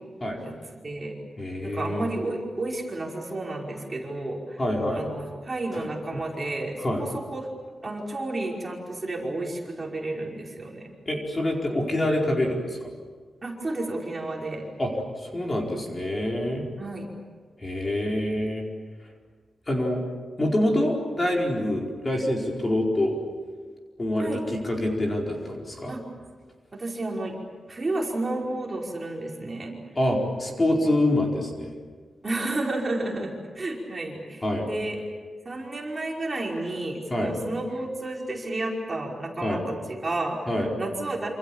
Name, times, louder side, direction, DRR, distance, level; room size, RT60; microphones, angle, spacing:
voice 1, 0.8-1.1 1.6-4.6 4.9-7.5 7.8-10.9 13.4-14.6 16.8-17.1 24.2-24.4 25.9-26.0 26.7-27.4 27.7-29.8 30.7-30.9 32.2-35.0 35.5-41.3, right 2 dB, 25° right, -2 dB, 5.4 m, -31 dB
voice 2, 1.4-2.1 4.6-5.0 5.7-5.8 6.8-7.0 11.1-12.9 14.8-14.9 15.2-16.6 17.6-18.6 19.7-20.0 20.4-23.2 24.0-25.9 30.0-31.7 34.4-34.7 37.1-37.3 39.4-39.6 40.5-40.7, left 1 dB, 25° left, -1 dB, 4.6 m, -26 dB
28.0 x 27.5 x 7.4 m, 1.5 s
wide cardioid pair, 140°, 0 cm